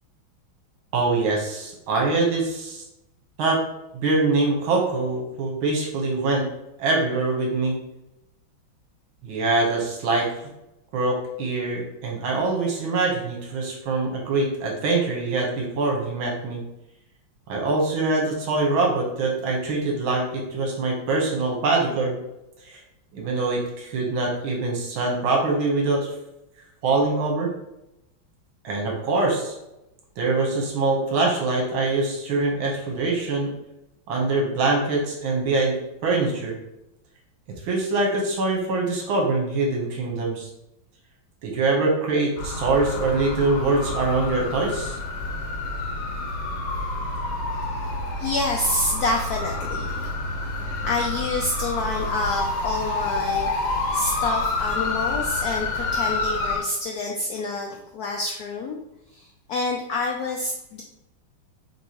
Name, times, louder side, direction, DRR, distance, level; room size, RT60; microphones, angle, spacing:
voice 1, 0.9-2.8 3.4-3.6 3.9-6.5 6.8-7.8 9.2-10.3 10.9-16.6 17.5-22.2 22.7-22.8 23.1-26.1 26.8-27.5 28.6-29.5 30.2-33.5 34.1-35.8 36.0-36.6 37.6-40.5 41.4-45.0, right 3 dB, 80° right, -1 dB, 1.9 m, -24 dB
sound 1, 42.4-56.6, left 2 dB, 60° left, 1.3 m, -28 dB
voice 2, 48.2-50.1 50.8-53.5 53.9-58.8 59.1-60.8, left 2 dB, 80° left, 1 dB, 0.8 m, -27 dB
6.0 x 2.9 x 2.9 m, 0.87 s
omnidirectional pair, 2.2 m